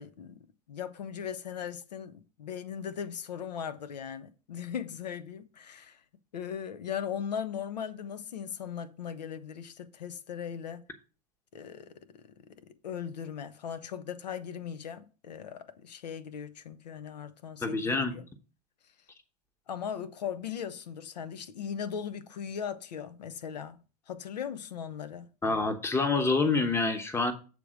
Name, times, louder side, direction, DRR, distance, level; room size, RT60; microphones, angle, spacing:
voice 1, 0.0-6.0 6.3-10.8 11.5-12.5 12.8-18.2 19.7-23.8 24.1-25.3, left 8 dB, 80° left, 0.8 m, -38 dB
voice 2, 17.6-18.1 25.4-27.3, left 3 dB, 10° left, 1.0 m, -27 dB
7.7 x 3.5 x 6.1 m
hypercardioid pair, 105°, 21 cm